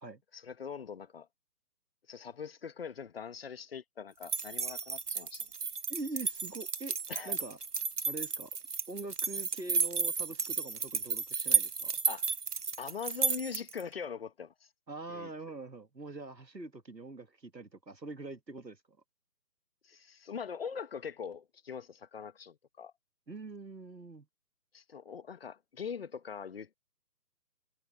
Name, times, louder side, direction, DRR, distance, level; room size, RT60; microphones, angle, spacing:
voice 1, 0.3-1.3 2.1-5.5 7.1-7.4 12.1-12.3 12.8-14.7 15.1-15.3 19.8-22.9 24.7-26.7, left 6 dB, 35° left, 1.6 m, -42 dB
sound 1, 4.2-13.8, right 4 dB, 65° right, 1.4 m, -33 dB
voice 2, 5.9-7.0 7.3-7.6 8.1-8.5 8.9-11.9 14.9-19.0 23.3-24.3, right 2 dB, 90° right, 1.7 m, -44 dB
figure-of-eight pair, 145°, 49 cm